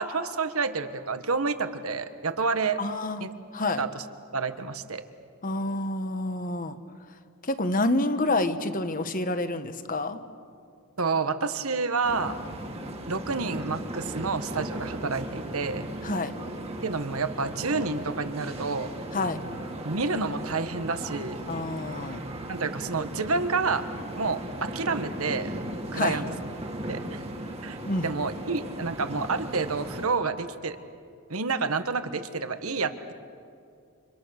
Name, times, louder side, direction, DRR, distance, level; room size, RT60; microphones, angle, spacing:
voice 1, 0.0-2.8 3.2-3.3 3.8-4.0 4.3-5.0 11.0-12.4 13.1-15.8 16.8-18.9 19.8-21.4 22.5-23.9 24.1-25.5 25.9-26.2 26.9-27.2 27.6-30.8 31.3-33.1, right 4 dB, 80° right, 10 dB, 1.4 m, -29 dB
voice 2, 2.8-3.2 3.5-3.8 5.4-6.8 7.4-10.2 16.0-16.3 19.1-19.4 21.5-22.2 25.9-26.2 27.9-28.0, left 2 dB, 40° left, 10 dB, 1.3 m, -28 dB
sound 1, 12.0-30.1, right 1 dB, 30° right, 2.2 m, -37 dB
30.0 x 27.5 x 6.6 m, 2.4 s
head